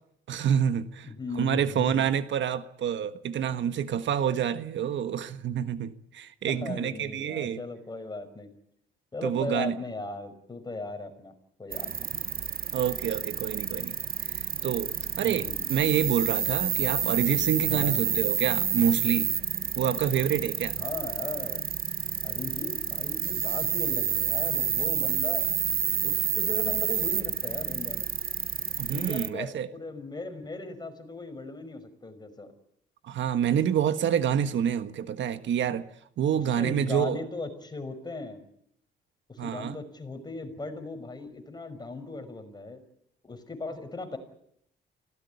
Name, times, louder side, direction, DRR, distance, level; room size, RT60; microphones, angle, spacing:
voice 1, 0.3-1.1 1.3-7.6 9.2-9.8 12.7-14.0 14.3-14.9 15.2-19.3 19.7-20.7 28.8-29.7 33.0-35.9 36.2-37.2 39.4-39.8, right 9 dB, 70° right, 1.5 m, -27 dB
voice 2, 1.0-2.1 6.5-8.5 9.1-11.3 11.6-11.9 15.2-15.7 17.6-18.0 20.8-21.7 22.2-25.5 26.0-28.1 28.9-32.5 36.6-38.4 39.3-42.8 43.2-44.2, left 3 dB, 20° left, 5.7 m, -38 dB
sound 1, 11.7-29.3, right 8 dB, 50° right, 1.2 m, -29 dB
25.5 x 17.5 x 9.6 m
cardioid pair, 90°, 20 cm